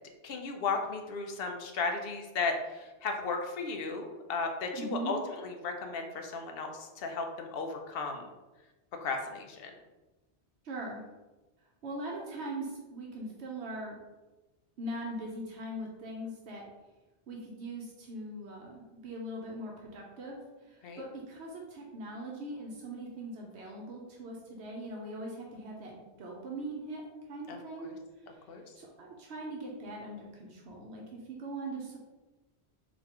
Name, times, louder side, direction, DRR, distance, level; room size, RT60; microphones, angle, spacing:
voice 1, 0.2-8.3 9.0-9.7 20.8-21.0 27.5-28.0 28.3-28.6, left 4 dB, 65° left, 3 dB, 0.8 m, -35 dB
voice 2, 4.7-5.2 10.6-11.0 11.8-14.0 14.8-16.6 17.3-27.0 27.3-27.9 28.7-32.0, right 1 dB, 80° right, -1 dB, 1.0 m, -41 dB
3.9 x 3.5 x 2.9 m, 1.1 s
omnidirectional pair, 1.1 m